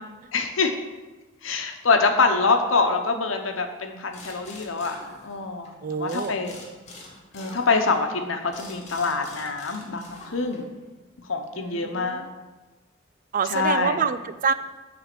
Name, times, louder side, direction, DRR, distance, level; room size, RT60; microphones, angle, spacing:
voice 1, 0.3-0.7 1.4-5.0 5.2-6.5 7.3-10.7 11.2-12.2 13.5-14.0, left 4 dB, 85° left, 5 dB, 0.9 m, -25 dB
sound 1, 4.1-5.7 6.1-10.8, left 2 dB, 40° left, 1.9 m, -45 dB
voice 2, 5.8-6.3 11.6-12.3 13.3-14.5, right 6 dB, 45° right, 13 dB, 0.4 m, -26 dB
9.1 x 3.5 x 6.8 m, 1.2 s
head